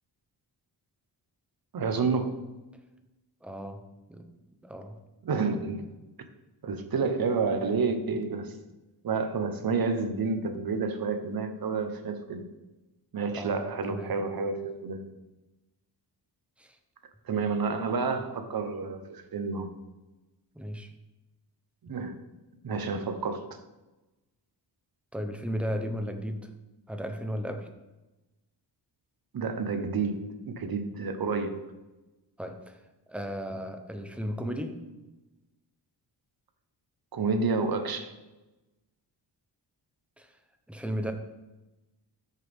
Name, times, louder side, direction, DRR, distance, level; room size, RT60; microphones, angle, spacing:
voice 1, 1.7-2.4 5.2-5.8 6.6-8.6 9.0-12.4 13.1-15.1 17.2-19.7 21.8-22.2 22.6-23.5 29.3-31.6 37.1-38.1, right 4 dB, 55° right, 7 dB, 1.2 m, -29 dB
voice 2, 3.4-5.0 13.3-14.1 16.6-16.8 20.5-20.9 25.1-26.5 26.9-27.7 32.4-32.8 33.1-34.8 40.2-40.4 40.7-41.1, equal, 5° right, 6 dB, 0.9 m, -35 dB
13.0 x 6.7 x 3.7 m, 1.1 s
wide cardioid pair, 135°, 43 cm